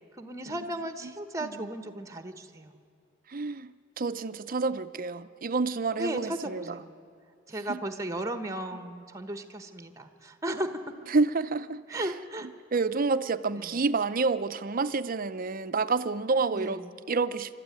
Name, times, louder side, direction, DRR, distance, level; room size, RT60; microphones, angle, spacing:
voice 1, 0.2-2.7 6.0-6.9 7.5-11.1 11.9-12.5 13.5-13.8 16.5-16.9, right 1 dB, 15° right, 1.2 m, -35 dB
voice 2, 3.3-6.8 7.7-7.8 11.1-12.1 12.7-16.8 17.1-17.6, right 4 dB, 45° right, 0.6 m, -29 dB
26.5 x 13.0 x 9.7 m
head